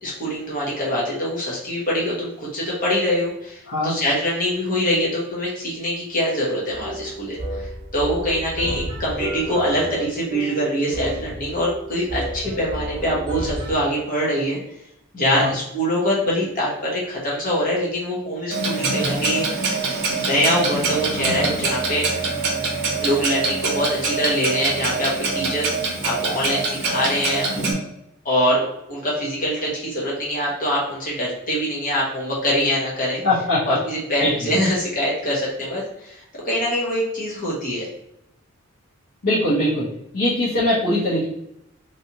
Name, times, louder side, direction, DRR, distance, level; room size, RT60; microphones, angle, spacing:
voice 1, 0.0-14.6 15.1-19.7 20.2-22.1 23.0-27.5 28.2-33.2 33.7-37.9, equal, 40° left, -5 dB, 1.1 m, -24 dB
sound 1, 6.7-13.8, equal, 20° right, 0.9 m, -31 dB
Clock, 18.5-27.7, right 3 dB, 50° right, 0.7 m, -24 dB
voice 2, 33.2-33.8 34.2-34.3 39.2-41.2, left 1 dB, 75° left, -10 dB, 1.1 m, -21 dB
3.2 x 2.7 x 2.8 m, 0.82 s
head